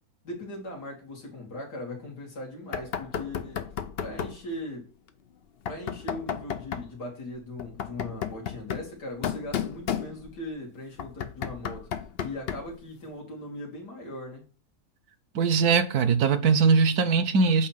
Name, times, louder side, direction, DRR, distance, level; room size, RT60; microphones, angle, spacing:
voice 1, 0.2-3.7 4.0-4.9 5.7-11.9 12.2-14.4, left 1 dB, 85° left, 2.8 m, -39 dB
Knock, 2.7-4.4 5.7-6.9 7.6-10.5 11.0-12.8, left 8 dB, 65° left, 0.6 m, -33 dB
voice 2, 15.3-17.7, right 5 dB, 75° right, 1.2 m, -21 dB
8.2 x 2.9 x 5.6 m
omnidirectional pair, 1.7 m